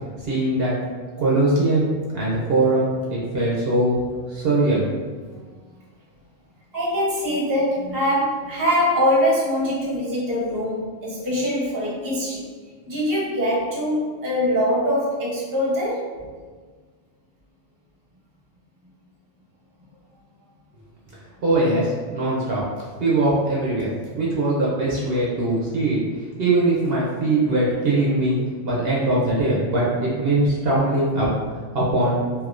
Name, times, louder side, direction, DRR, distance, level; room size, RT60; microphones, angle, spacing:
voice 1, 0.2-0.7 1.2-4.0 4.3-4.8 21.4-22.6 23.0-26.0 26.4-28.4 28.6-31.3 31.7-32.2, right 2 dB, 60° right, -5 dB, 0.8 m, -21 dB
voice 2, 6.7-12.4 12.9-16.0, equal, 20° right, -5 dB, 0.7 m, -23 dB
3.5 x 2.7 x 2.4 m, 1.5 s
omnidirectional pair, 1.3 m